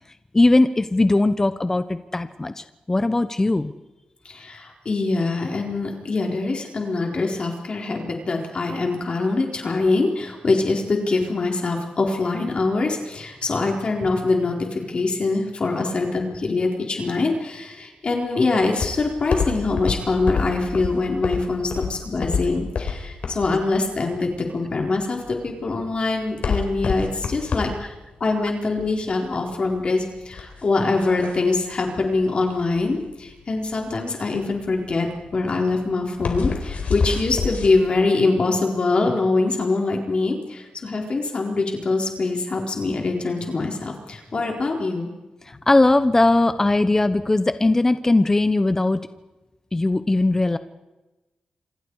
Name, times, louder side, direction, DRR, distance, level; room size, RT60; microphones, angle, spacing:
voice 1, 0.3-3.7 45.5-49.0 49.7-50.6, left 2 dB, 20° left, 11 dB, 1.0 m, -19 dB
voice 2, 4.2-45.1, left 3 dB, 45° left, 1 dB, 4.3 m, -24 dB
sound 1, 18.7-37.7, left 5 dB, 65° left, 4.2 m, -28 dB
27.0 x 26.5 x 4.9 m, 1.1 s
cardioid pair, 95°, 3 cm